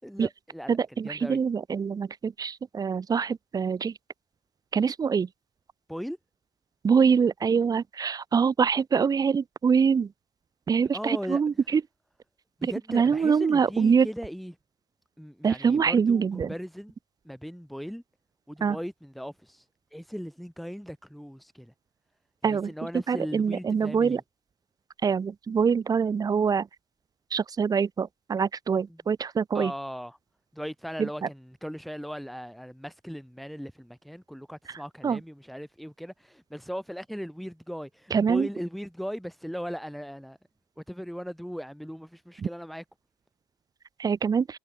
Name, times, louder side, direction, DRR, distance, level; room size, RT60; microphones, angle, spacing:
voice 1, 0.0-1.4 5.9-6.2 10.8-11.7 12.6-14.6 15.2-16.9 17.2-18.0 18.5-19.6 19.9-21.7 22.4-24.2 28.9-29.0 29.5-30.2 30.5-40.4 40.8-42.8, equal, ahead, 7.7 m, -38 dB
voice 2, 0.7-3.9 4.7-5.3 6.8-10.1 10.7-11.5 12.9-14.1 15.4-16.5 18.6-18.8 22.4-22.7 23.1-24.2 25.0-26.6 27.3-29.7 35.0-35.2 38.1-38.5 44.0-44.4, right 6 dB, 20° right, 0.4 m, -24 dB
cardioid pair, 110°, 17 cm